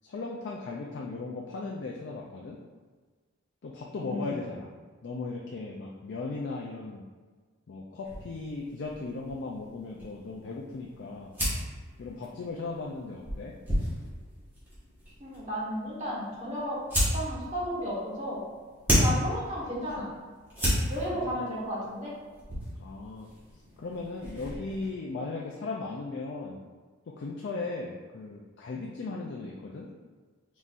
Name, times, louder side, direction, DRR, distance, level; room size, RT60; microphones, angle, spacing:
voice 1, 0.0-2.6 3.6-4.7 5.0-7.1 7.7-11.3 12.0-13.6 21.1-21.4 22.8-23.3 23.8-26.6 27.1-29.9, left 3 dB, 50° left, -2 dB, 0.3 m, -37 dB
voice 2, 4.0-4.4 15.2-18.4 18.9-20.1 20.9-22.1, equal, 35° right, -7 dB, 1.2 m, -33 dB
sound 1, 8.0-24.9, equal, 10° right, 1.2 m, -34 dB
4.1 x 3.7 x 2.5 m, 1.5 s
head